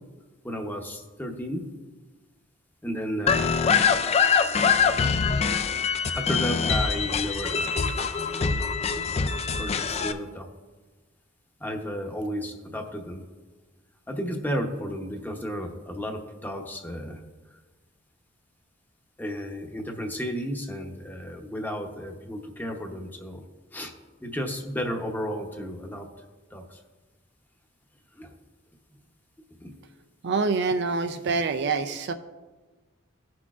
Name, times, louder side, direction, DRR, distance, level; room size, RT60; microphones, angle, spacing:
voice 1, 0.4-1.7 2.8-3.7 6.1-7.8 9.6-10.5 11.6-13.2 14.1-17.2 19.2-23.4 23.7-23.9 24.2-26.1 26.5-26.6 28.2-28.3 29.6-29.7 31.3-31.7, equal, 10° left, 3 dB, 0.8 m, -33 dB
sound 1, 3.3-10.1, left 6 dB, 30° left, 0.4 m, -24 dB
voice 2, 30.2-32.1, right 4 dB, 60° right, 8 dB, 0.5 m, -26 dB
16.0 x 6.1 x 2.4 m, 1.3 s
head